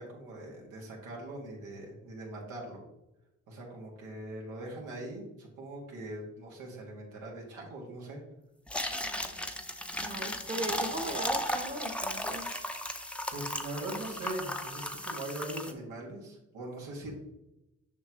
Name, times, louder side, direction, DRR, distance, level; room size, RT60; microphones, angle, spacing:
voice 1, 0.0-2.8 3.5-8.2 13.3-17.1, right 1 dB, 85° right, -2 dB, 2.1 m, -41 dB
sound 1, 8.7-15.7, left 1 dB, 5° left, 0.7 m, -35 dB
voice 2, 10.0-12.5, right 1 dB, 25° right, 3 dB, 1.1 m, -38 dB
7.2 x 5.7 x 3.0 m, 0.92 s
cardioid pair, 90°, 30 cm